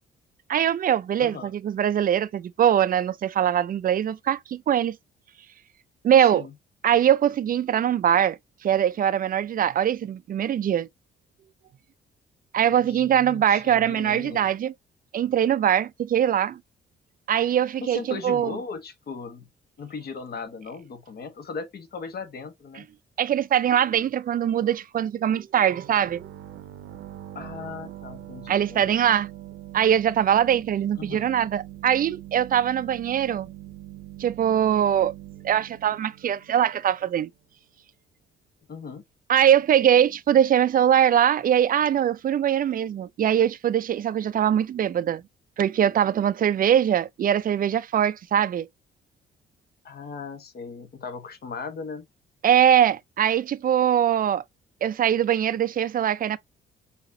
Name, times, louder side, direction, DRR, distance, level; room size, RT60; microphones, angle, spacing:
voice 1, 0.5-5.0 6.0-6.4 6.8-10.9 12.5-14.7 15.1-16.6 17.3-18.6 23.2-26.3 28.5-29.3 29.7-33.5 34.2-35.1 35.4-37.3 39.3-45.2 45.6-48.7 52.4-54.4 54.8-56.4, right 10 dB, 45° right, 0.4 m, -22 dB
voice 2, 1.2-1.5 6.2-6.5 12.8-14.5 17.8-19.5 19.8-22.9 27.3-29.0 31.0-31.3 38.7-39.0 49.8-52.1, left 5 dB, 50° left, 1.2 m, -38 dB
sound 1, 25.7-37.2, right 13 dB, 80° right, 0.8 m, -43 dB
5.7 x 2.9 x 2.7 m
cardioid pair, 90°, 20 cm